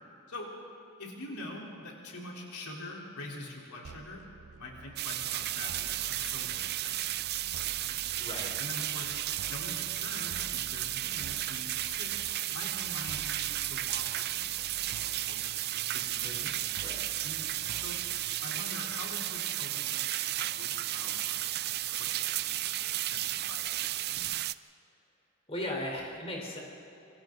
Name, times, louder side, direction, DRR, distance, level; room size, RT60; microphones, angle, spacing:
voice 1, 1.0-7.2 7.8-8.0 8.6-9.2 9.5-12.2 12.5-14.7 15.3-15.6 15.9-16.1 17.2-17.4 17.7-18.0 18.4-21.6 22.0-22.6 23.0-23.7, left 1 dB, 80° left, -2 dB, 3.9 m, -45 dB
sound 1, 3.8-18.6, right 4 dB, 85° right, 0.6 m, -51 dB
sound 2, 5.0-24.5, right 14 dB, 45° right, 0.5 m, -33 dB
voice 2, 8.2-8.5 16.2-17.0 25.5-26.6, left 1 dB, 25° left, -1 dB, 4.0 m, -37 dB
28.0 x 25.0 x 4.0 m, 3.0 s
head